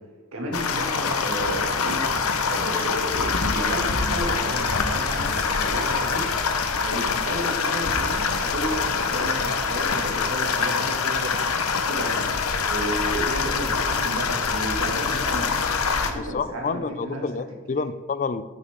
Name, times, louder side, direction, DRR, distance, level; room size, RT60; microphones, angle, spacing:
voice 1, 0.3-2.0 2.4-6.2 6.8-11.3 11.8-12.2 12.6-15.5 16.0-17.6, right 1 dB, 75° right, 0 dB, 2.1 m, -32 dB
sound 1, 0.5-16.1, left 5 dB, 90° left, 0.9 m, -25 dB
voice 2, 16.2-18.4, left 4 dB, 35° left, 14 dB, 0.4 m, -29 dB
10.0 x 8.3 x 3.7 m, 1.3 s
head